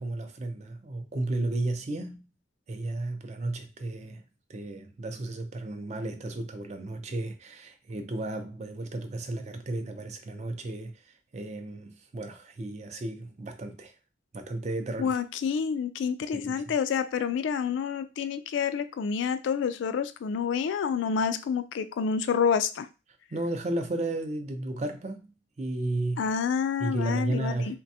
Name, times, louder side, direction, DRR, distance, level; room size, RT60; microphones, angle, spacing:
voice 1, 0.0-2.2 2.7-4.2 4.5-13.9 14.3-15.2 16.3-16.7 23.3-26.3 26.8-27.8, right 2 dB, 40° right, 0.4 m, -33 dB
voice 2, 15.0-22.9 26.2-27.8, left 6 dB, 85° left, 0.3 m, -28 dB
3.3 x 2.2 x 2.6 m
head